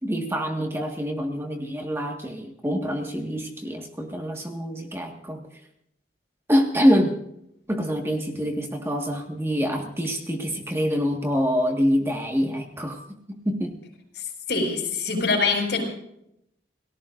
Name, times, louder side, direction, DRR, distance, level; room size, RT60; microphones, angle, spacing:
voice 1, 0.0-5.5 6.5-7.2 7.7-13.0 13.3-13.8, equal, 15° right, 2 dB, 1.7 m, -25 dB
voice 2, 14.1-15.8, left 4 dB, 70° left, 1 dB, 6.1 m, -24 dB
29.0 x 18.5 x 2.6 m, 0.78 s
head